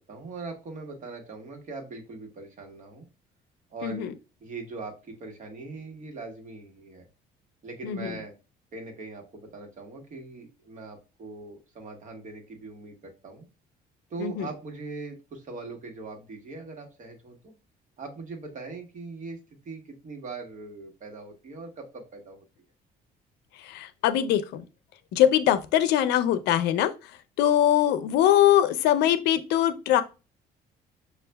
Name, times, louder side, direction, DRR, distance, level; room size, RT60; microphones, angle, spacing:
voice 1, 0.1-3.1 3.7-4.1 4.4-7.0 7.6-8.3 8.7-13.5 14.1-17.5 18.0-19.4 19.6-22.4, right 3 dB, 50° right, 1.3 m, -41 dB
voice 2, 7.8-8.1 14.2-14.5 23.6-24.6 25.1-26.9 27.4-30.0, left 11 dB, 85° left, 0.5 m, -22 dB
6.2 x 2.4 x 2.2 m
cardioid pair, 110°, 17 cm